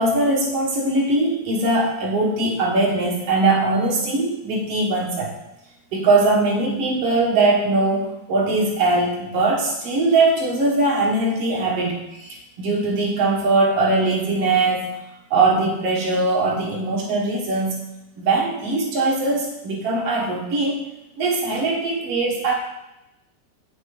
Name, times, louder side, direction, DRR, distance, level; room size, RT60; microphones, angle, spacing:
voice 1, 0.0-5.3 5.9-15.0 15.3-17.8 18.2-20.8 21.2-22.5, right 2 dB, 55° right, -3 dB, 2.4 m, -21 dB
8.8 x 8.7 x 3.3 m, 0.93 s
omnidirectional pair, 3.4 m